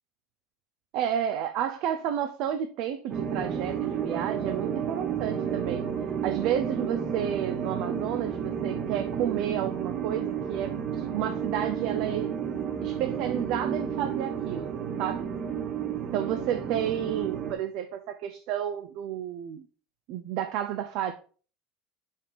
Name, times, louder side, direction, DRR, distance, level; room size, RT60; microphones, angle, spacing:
voice 1, 0.9-5.8 6.2-12.3 12.8-15.3 16.1-19.7 20.1-21.1, right 10 dB, 60° right, 0.6 m, -31 dB
sound 1, 3.1-17.5, right 7 dB, 35° right, 1.2 m, -31 dB
5.5 x 5.0 x 5.1 m
cardioid pair, 145°, 0 cm